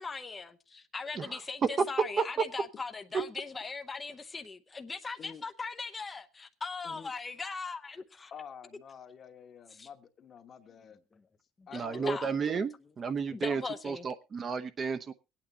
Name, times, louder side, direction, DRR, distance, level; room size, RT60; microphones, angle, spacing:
voice 1, 0.0-8.3 9.7-9.9 11.1-11.2 11.6-12.3 13.3-14.1, left 4 dB, 20° left, 0.7 m, -40 dB
voice 2, 8.3-11.0 11.7-12.2, left 7 dB, 40° left, 1.2 m, -48 dB
voice 3, 11.7-15.1, right 5 dB, 35° right, 0.9 m, -33 dB
23.0 x 8.9 x 2.8 m
cardioid pair, 130°, 0 cm